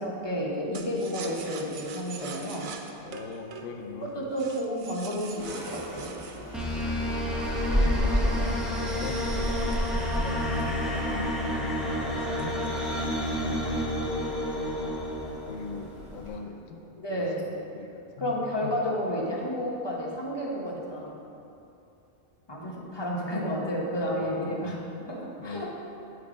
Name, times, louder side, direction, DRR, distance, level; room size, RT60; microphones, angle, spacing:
voice 1, 0.0-2.7 4.2-6.2 17.0-17.4 18.2-21.2 22.5-24.7 25.1-25.7, equal, 20° left, -4 dB, 0.8 m, -31 dB
sound 1, 0.7-7.7 8.2-10.6 11.0-11.1 11.4-11.8 12.2-12.9 13.2-13.8, right 5 dB, 70° right, 0.4 m, -44 dB
voice 2, 3.0-4.3 7.2-9.8 10.2-12.6 13.3-14.4 15.5-18.7 24.0-24.8 25.4-25.7, left 4 dB, 75° left, 4 dB, 1.0 m, -41 dB
sound 2, 5.4-16.3, equal, 25° right, 1.3 m, -34 dB
sound 3, 6.5-16.0, left 1 dB, ahead, 0.5 m, -30 dB
9.3 x 3.3 x 5.0 m, 2.7 s
omnidirectional pair, 1.4 m